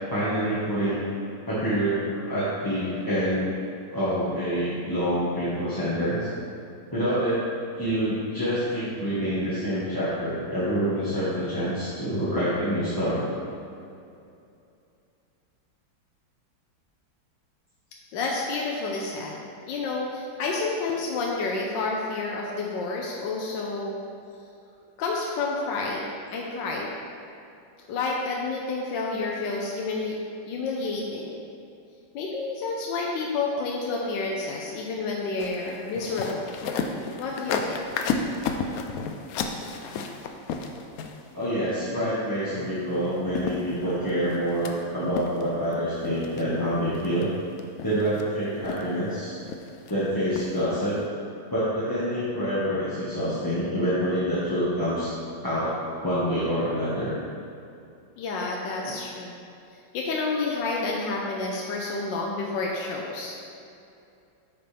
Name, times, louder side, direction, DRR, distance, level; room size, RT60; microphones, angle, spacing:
voice 1, 0.1-1.0 1.5-3.5 3.9-6.3 6.9-7.4 7.8-13.3 41.3-47.3 47.8-49.4 49.9-50.9 51.5-55.1 55.4-57.1, equal, 15° left, -12 dB, 1.1 m, -26 dB
voice 2, 18.1-19.4 19.7-24.0 25.0-26.9 27.9-30.2 30.5-31.4 32.1-36.6 37.2-37.8 58.2-59.4 59.9-63.5, left 3 dB, 70° left, -2 dB, 1.4 m, -29 dB
sound 1, 35.4-41.4 42.9-43.0 43.3-44.7 45.2-45.7 46.0-46.4 46.9-47.2 47.6-48.2 48.6-49.1 49.5-49.9 50.4-50.6 50.9-51.0, left 5 dB, 85° left, 0.7 m, -32 dB
9.0 x 5.9 x 3.4 m, 2.6 s
omnidirectional pair, 2.2 m